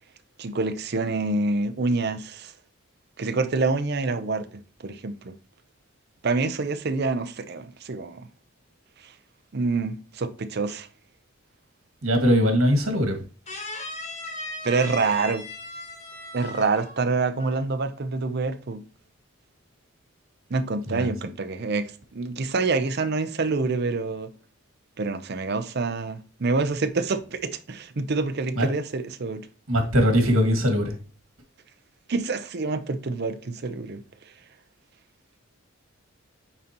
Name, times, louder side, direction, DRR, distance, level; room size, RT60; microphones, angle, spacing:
voice 1, 0.4-2.5 3.2-4.5 4.8-5.3 6.2-8.3 9.5-10.9 14.6-15.4 16.3-18.8 20.5-24.3 25.0-29.4 32.1-34.0, right 3 dB, 50° right, 0.6 m, -26 dB
voice 2, 12.0-13.2 20.8-21.3 28.5-28.7 29.7-31.0, equal, 80° right, 1.9 m, -21 dB
sound 1, 13.5-17.1 17.4-17.7, left 2 dB, 35° left, 1.1 m, -37 dB
8.8 x 3.9 x 2.9 m
head